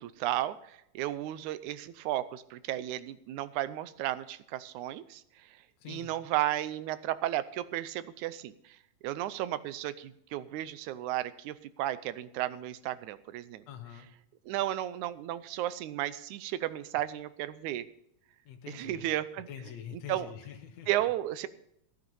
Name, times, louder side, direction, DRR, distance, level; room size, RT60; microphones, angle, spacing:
voice 1, 0.0-5.2 5.9-8.8 9.0-13.6 14.5-17.9 18.7-19.5 20.1-20.3 20.9-21.5, right 14 dB, 85° right, 15 dB, 2.1 m, -34 dB
voice 2, 5.8-6.1 13.7-14.1 18.5-19.1 19.5-20.9, left 9 dB, 70° left, 4 dB, 2.4 m, -45 dB
15.5 x 9.3 x 5.4 m, 0.76 s
omnidirectional pair, 3.4 m